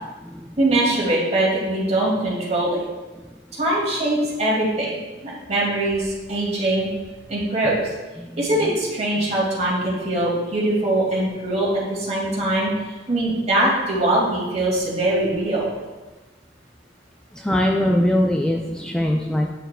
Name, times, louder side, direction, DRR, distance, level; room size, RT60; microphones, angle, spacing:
voice 1, 0.6-2.8 3.5-5.0 5.2-6.9 7.3-7.9 8.4-12.7 13.1-15.7, right 1 dB, 40° right, -5 dB, 2.2 m, -22 dB
voice 2, 17.3-19.5, equal, 5° left, -1 dB, 0.3 m, -21 dB
9.0 x 6.5 x 2.2 m, 1.2 s
head